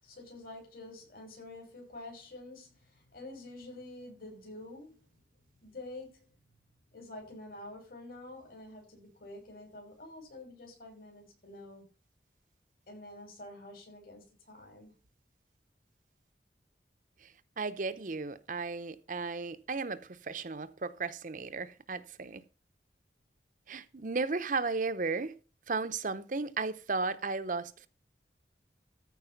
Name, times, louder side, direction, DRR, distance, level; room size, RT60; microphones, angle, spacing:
voice 1, 0.0-5.0 5.6-6.2 6.9-11.9 12.9-14.9, left 2 dB, 55° left, 6.0 m, -48 dB
voice 2, 17.6-22.4 23.7-25.4 25.7-27.9, right 4 dB, 45° right, 0.7 m, -35 dB
14.0 x 4.8 x 5.8 m
head